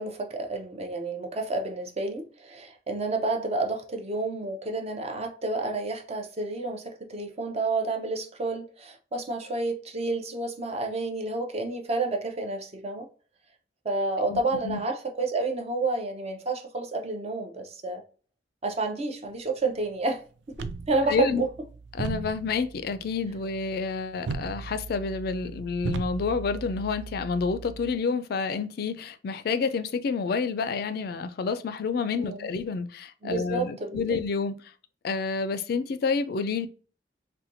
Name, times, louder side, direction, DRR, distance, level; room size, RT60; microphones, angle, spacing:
voice 1, 0.0-13.1 13.8-18.0 18.6-20.2 20.6-21.5 32.1-32.5 33.2-34.1, right 3 dB, 35° right, 0.6 m, -30 dB
voice 2, 14.3-14.8 21.1-21.4 21.9-34.6 35.0-36.7, left 5 dB, 60° left, 0.3 m, -29 dB
sound 1, 20.5-27.9, right 4 dB, 90° right, 0.4 m, -38 dB
4.1 x 2.2 x 2.5 m
head